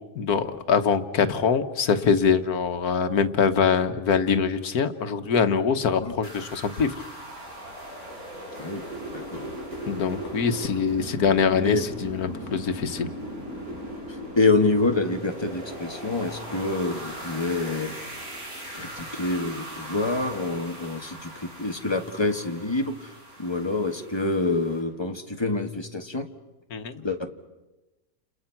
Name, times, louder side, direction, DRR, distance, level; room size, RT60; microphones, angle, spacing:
voice 1, 0.0-7.0 9.9-13.1 26.7-27.0, left 6 dB, 85° left, 9 dB, 1.7 m, -23 dB
sound 1, 6.2-24.8, equal, 80° right, 5.8 m, -38 dB
voice 2, 14.4-18.0 18.7-23.1 23.4-26.3 27.0-27.3, left 2 dB, 20° left, 5 dB, 1.6 m, -26 dB
29.5 x 29.0 x 5.9 m, 1.1 s
omnidirectional pair, 1.5 m